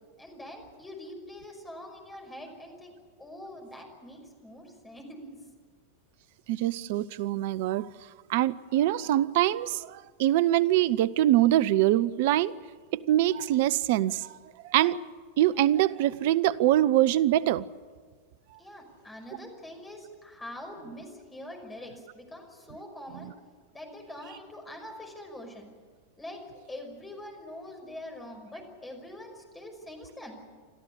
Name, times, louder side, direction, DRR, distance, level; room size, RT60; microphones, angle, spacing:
voice 1, 0.2-5.3 18.6-23.3 23.7-25.7 26.2-30.4, left 1 dB, 10° left, 2 dB, 5.7 m, -44 dB
voice 2, 6.5-7.9 8.3-12.5 12.9-14.4 14.6-15.0 15.4-17.7, right 13 dB, 50° right, 18 dB, 0.6 m, -24 dB
30.0 x 13.5 x 9.9 m, 1.5 s
figure-of-eight pair, 90°, 0 cm